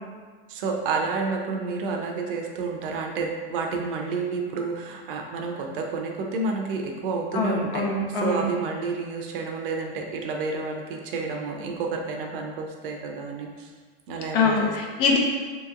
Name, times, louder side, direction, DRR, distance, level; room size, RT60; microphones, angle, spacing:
voice 1, 0.5-13.7 14.1-14.7, right 4 dB, 60° right, 2 dB, 0.6 m, -30 dB
voice 2, 7.3-8.4 14.3-15.2, left 4 dB, 65° left, 0 dB, 0.7 m, -23 dB
2.9 x 2.9 x 2.4 m, 1.5 s
supercardioid pair, 135°, 31 cm